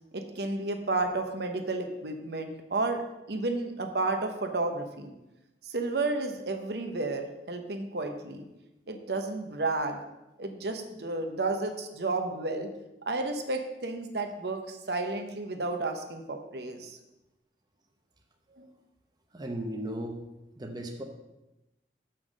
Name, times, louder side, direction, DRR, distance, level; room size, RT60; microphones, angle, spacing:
voice 1, 0.1-3.0 3.3-5.1 5.6-8.4 8.9-10.0 10.4-12.7 13.1-17.0 18.6-18.7, right 2 dB, 65° right, 5 dB, 0.9 m, -32 dB
voice 2, 19.3-20.2 20.6-21.0, right 1 dB, 25° right, 3 dB, 0.8 m, -36 dB
7.1 x 5.8 x 6.3 m, 0.96 s
head